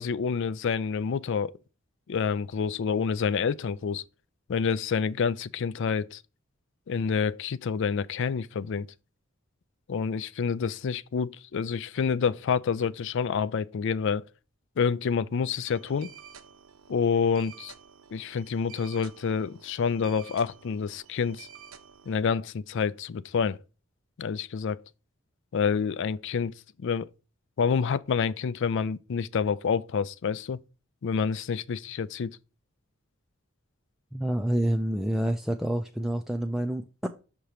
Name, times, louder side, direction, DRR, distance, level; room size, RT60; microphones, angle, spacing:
voice 1, 0.0-1.5 2.1-4.0 4.5-6.2 6.9-8.9 9.9-14.2 14.8-16.1 16.9-17.7 18.1-21.5 22.1-23.6 24.2-24.8 25.5-26.5 26.8-27.1 27.6-30.6 31.0-32.4, left 6 dB, 60° left, 0.4 m, -28 dB
sound 1, 15.7-22.2, right 7 dB, 80° right, 0.8 m, -50 dB
voice 2, 34.1-37.1, right 1 dB, ahead, 0.4 m, -28 dB
6.7 x 3.0 x 4.9 m
head